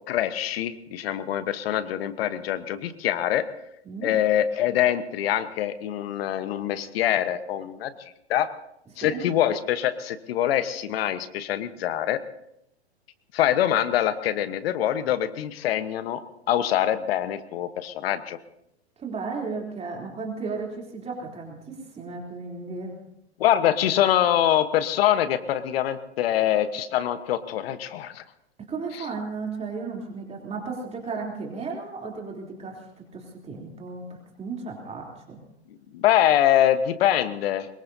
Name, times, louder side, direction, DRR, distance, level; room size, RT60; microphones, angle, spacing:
voice 1, 0.1-3.5 4.0-7.9 8.3-8.5 9.0-12.2 13.3-16.2 16.5-18.4 23.4-28.2 28.9-29.0 35.9-37.7, left 11 dB, 60° left, 12 dB, 1.2 m, -24 dB
voice 2, 19.0-23.0 28.6-35.4, right 4 dB, 20° right, -1 dB, 3.4 m, -35 dB
23.5 x 22.0 x 2.8 m, 0.78 s
hypercardioid pair, 115°, 33 cm